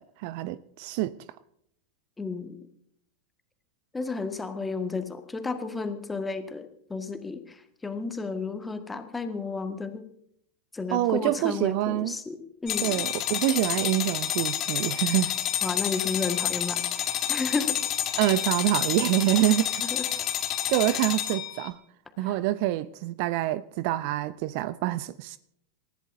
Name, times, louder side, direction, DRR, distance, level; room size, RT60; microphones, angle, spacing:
voice 1, 0.2-1.2 10.9-12.2 12.8-15.4 18.2-19.8 20.7-21.8 22.2-25.4, right 15 dB, 45° right, 0.6 m, -26 dB
voice 2, 2.2-2.6 3.9-10.0 10.7-12.9 15.6-16.8 17.3-17.8 19.8-20.1 22.2-22.4, left 4 dB, 10° left, 1.7 m, -32 dB
sound 1, 12.7-21.7, left 11 dB, 35° left, 2.1 m, -29 dB
28.0 x 14.5 x 2.7 m
figure-of-eight pair, 90°, 0 cm